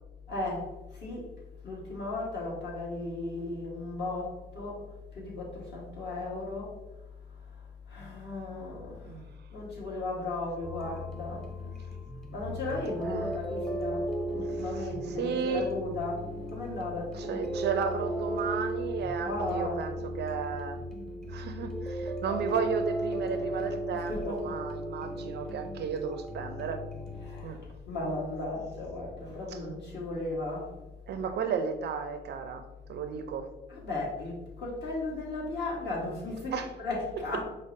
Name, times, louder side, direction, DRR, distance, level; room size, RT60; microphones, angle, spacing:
voice 1, 0.3-0.7 1.0-1.2 1.6-4.8 5.1-6.7 7.9-9.0 9.5-11.4 12.3-16.2 16.5-17.4 19.2-19.8 24.0-24.5 27.2-30.7 33.7-37.4, left 2 dB, 60° left, -5 dB, 1.4 m, -35 dB
sound 1, 10.6-27.5, right 1 dB, 5° left, 0.5 m, -36 dB
voice 2, 15.2-15.7 17.1-20.8 21.3-26.8 27.4-27.6 29.5-29.6 31.1-33.5 36.5-36.7, right 6 dB, 60° right, 7 dB, 0.4 m, -34 dB
5.1 x 2.0 x 2.6 m, 1.1 s
cardioid pair, 90°, 20 cm